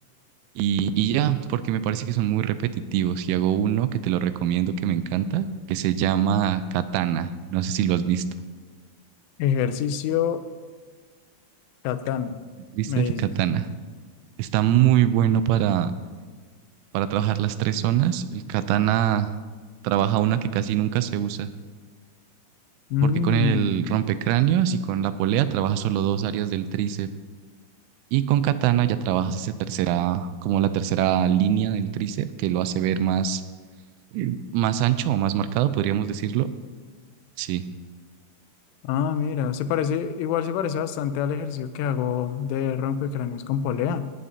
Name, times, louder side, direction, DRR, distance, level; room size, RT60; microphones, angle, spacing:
voice 1, 0.6-8.2 12.7-13.7 14.4-15.9 16.9-19.3 19.8-21.5 23.0-27.1 28.1-33.4 34.1-36.5 37.4-37.6, right 10 dB, 90° right, 12 dB, 3.2 m, -23 dB
voice 2, 9.4-10.4 11.8-12.4 12.9-13.4 22.9-24.0 38.8-44.1, left 8 dB, 90° left, 11 dB, 3.2 m, -26 dB
17.5 x 13.5 x 2.8 m, 1.5 s
omnidirectional pair, 5.5 m